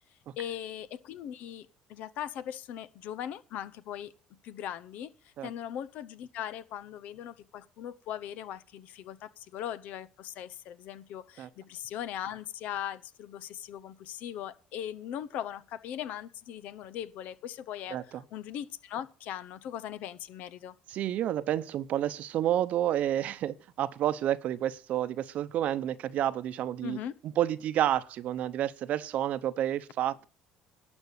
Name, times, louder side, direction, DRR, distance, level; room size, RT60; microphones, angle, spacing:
voice 1, 0.4-4.1 4.4-5.1 5.4-18.0 18.3-20.7 26.8-27.1, left 10 dB, 70° left, 0.8 m, -39 dB
voice 2, 17.9-18.2 20.9-27.0 27.2-30.3, right 11 dB, 60° right, 0.8 m, -30 dB
11.5 x 5.3 x 8.3 m
supercardioid pair, 85°, 3 cm